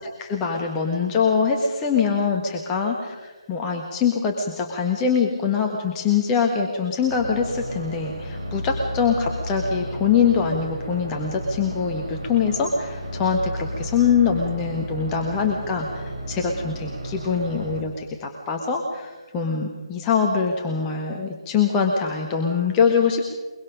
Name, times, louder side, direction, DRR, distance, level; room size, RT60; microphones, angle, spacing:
voice 1, 0.2-23.2, left 6 dB, 15° left, 1 dB, 1.4 m, -23 dB
sound 1, 7.1-17.8, equal, 75° right, 5.4 m, -33 dB
23.0 x 23.0 x 5.2 m, 1.3 s
figure-of-eight pair, 145°, 3 cm